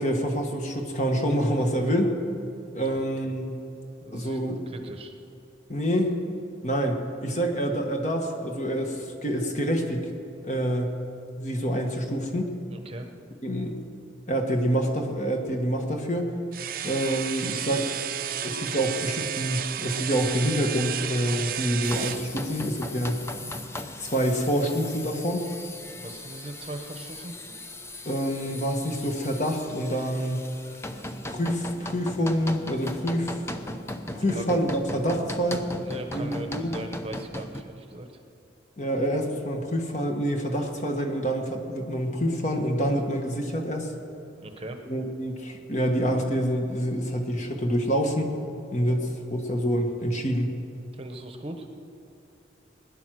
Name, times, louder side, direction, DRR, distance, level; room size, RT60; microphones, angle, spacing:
voice 1, 0.0-2.2 2.7-3.6 4.1-4.6 5.7-6.2 6.6-10.1 10.4-10.9 11.4-12.5 13.4-13.7 14.3-16.3 16.8-17.9 18.4-23.2 24.0-25.4 28.0-30.5 31.3-33.4 34.1-35.7 36.1-36.8 38.8-43.9 44.9-48.3 48.7-50.5, equal, 40° left, 2 dB, 1.6 m, -27 dB
voice 2, 4.0-5.1 12.7-13.1 25.9-27.4 34.2-34.4 35.8-38.2 44.4-44.8 50.9-51.7, right 1 dB, 30° right, 5 dB, 1.0 m, -39 dB
sound 1, 16.5-22.2, right 9 dB, 50° right, 0.6 m, -32 dB
sound 2, 21.8-37.6, left 1 dB, 15° left, 0.6 m, -38 dB
20.0 x 10.5 x 6.3 m, 2.7 s
head